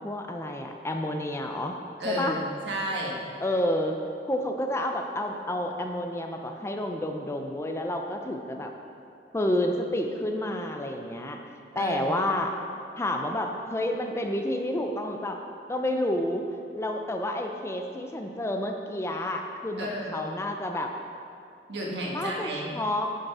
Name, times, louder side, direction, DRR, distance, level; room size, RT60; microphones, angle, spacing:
voice 1, 0.0-1.8 2.0-2.4 3.4-4.0 4.3-8.7 9.3-11.4 11.8-12.5 13.0-15.4 15.7-16.4 16.7-20.9 22.1-23.1, left 1 dB, 15° left, 3 dB, 0.5 m, -29 dB
voice 2, 2.0-3.3 11.7-12.1 19.8-20.3 21.7-22.7, equal, 75° right, -2 dB, 1.5 m, -32 dB
9.9 x 5.3 x 4.8 m, 2.4 s
head